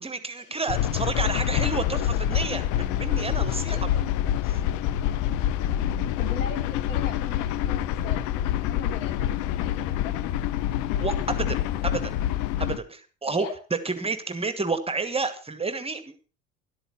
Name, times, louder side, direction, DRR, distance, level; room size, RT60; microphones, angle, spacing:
voice 1, 0.0-4.1 4.4-4.6 11.0-11.6 11.8-12.1 12.6-13.5 13.8-16.3, right 3 dB, 15° right, 11 dB, 1.4 m, -30 dB
sound 1, 0.7-12.8, left 11 dB, 50° left, 0.9 m, -26 dB
sound 2, 4.9-12.3, right 7 dB, 5° left, 4.9 m, -47 dB
voice 2, 6.2-10.2 13.3-13.5, left 6 dB, 65° left, 4 dB, 3.8 m, -40 dB
12.5 x 11.5 x 5.6 m, 0.35 s
figure-of-eight pair, 70°, 40 cm